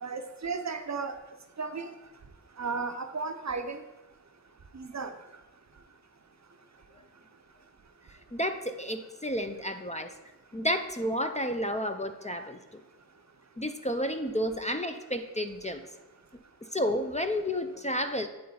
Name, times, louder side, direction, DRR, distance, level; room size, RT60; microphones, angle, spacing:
voice 1, 0.0-1.1 1.6-1.9 2.6-3.8 4.7-5.1, right 4 dB, 45° right, 7 dB, 0.6 m, -34 dB
voice 2, 8.3-10.1 10.5-12.8 13.6-15.8 16.7-18.3, equal, 20° left, 6 dB, 0.4 m, -31 dB
8.4 x 4.3 x 3.9 m, 1.1 s
wide cardioid pair, 45°, 37 cm